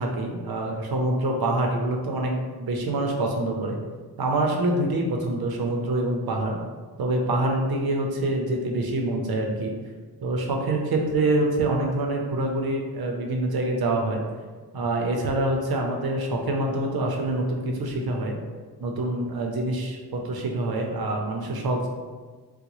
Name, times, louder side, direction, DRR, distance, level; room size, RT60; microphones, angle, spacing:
voice 1, 0.0-3.8 4.2-6.6 7.0-9.7 10.2-14.2 14.7-18.4 18.8-21.9, right 2 dB, 70° right, 1 dB, 0.6 m, -26 dB
3.8 x 2.0 x 2.9 m, 1.4 s
wide cardioid pair, 160°, 39 cm